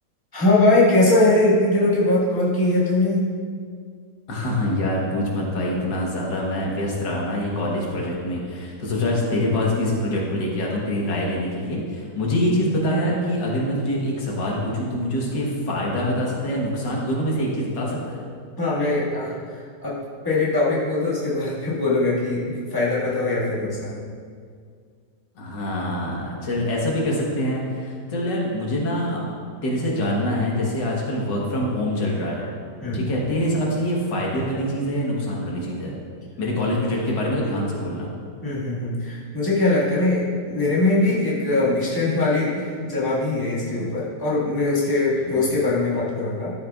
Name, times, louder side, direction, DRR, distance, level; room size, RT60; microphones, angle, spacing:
voice 1, 0.3-3.2 18.6-20.0 20.2-24.0 32.8-33.0 38.4-46.5, left 2 dB, 15° left, -8 dB, 1.6 m, -21 dB
voice 2, 4.3-18.2 25.4-32.5 32.9-35.9 36.4-38.1 45.1-45.4, left 1 dB, 85° left, -3 dB, 2.0 m, -25 dB
12.5 x 6.7 x 2.4 m, 2.1 s
omnidirectional pair, 1.9 m